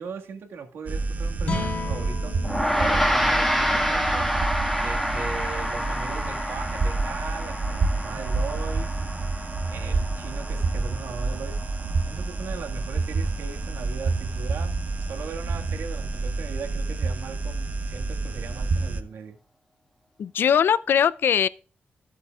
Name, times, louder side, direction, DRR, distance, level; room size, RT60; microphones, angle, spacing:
voice 1, 0.0-2.4 2.8-4.3 4.8-8.9 9.7-11.6 12.1-19.4, right 5 dB, 85° right, 1.7 m, -38 dB
sound 1, 0.9-19.0, right 3 dB, 45° right, 0.8 m, -29 dB
sound 2, 1.4-7.8, left 3 dB, 45° left, 3.0 m, -37 dB
Gong, 2.4-12.0, equal, 5° left, 1.6 m, -28 dB
voice 2, 20.2-21.5, left 8 dB, 65° left, 0.4 m, -20 dB
14.0 x 8.4 x 2.4 m
wide cardioid pair, 125°, 4 cm